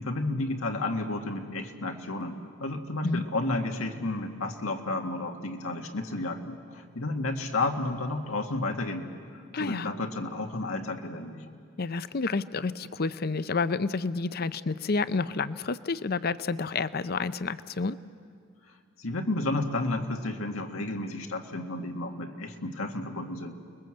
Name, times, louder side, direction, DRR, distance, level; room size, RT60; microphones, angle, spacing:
voice 1, 0.0-11.4 18.7-23.6, left 2 dB, 90° left, 3 dB, 2.0 m, -32 dB
voice 2, 9.5-9.9 11.8-18.0, left 4 dB, 45° left, 14 dB, 0.6 m, -29 dB
29.5 x 21.0 x 7.8 m, 2.2 s
head